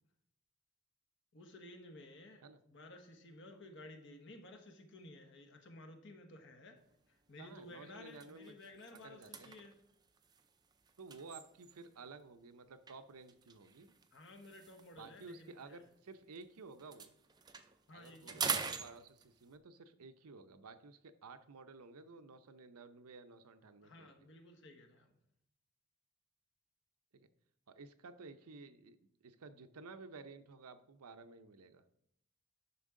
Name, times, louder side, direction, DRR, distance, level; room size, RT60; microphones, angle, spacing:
voice 1, 1.3-6.8 7.1-9.7 14.1-15.8 17.9-18.6 23.8-25.2, left 2 dB, 55° left, 4 dB, 1.3 m, -55 dB
sound 1, 6.9-7.1 7.6-7.7 8.1-12.0 12.9-16.4 16.7-19.6, right 6 dB, 20° right, 0.4 m, -45 dB
voice 2, 7.4-8.6 8.9-9.6 11.0-13.9 14.9-17.1 17.9-24.1 27.1-27.3 27.7-29.0 29.2-31.8, right 3 dB, 85° right, 10 dB, 0.6 m, -54 dB
11.0 x 5.9 x 3.7 m, 0.76 s
head